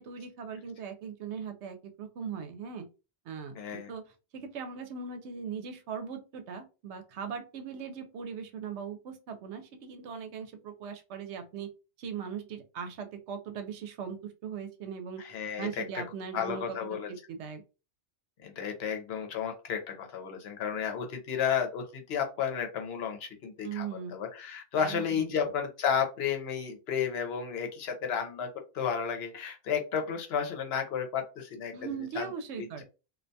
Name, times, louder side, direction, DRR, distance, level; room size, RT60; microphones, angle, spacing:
voice 1, 0.0-2.9 3.3-11.7 12.0-15.2 15.6-17.6 23.6-24.2 24.8-25.5 31.7-32.8, right 6 dB, 85° right, 7 dB, 0.9 m, -40 dB
voice 2, 3.6-3.9 15.2-16.0 16.3-17.1 18.4-23.9 24.1-28.5 28.7-31.7 32.2-32.3 32.6-32.7, left 7 dB, 70° left, 4 dB, 0.9 m, -32 dB
2.4 x 2.2 x 2.6 m, 0.31 s
omnidirectional pair, 1.1 m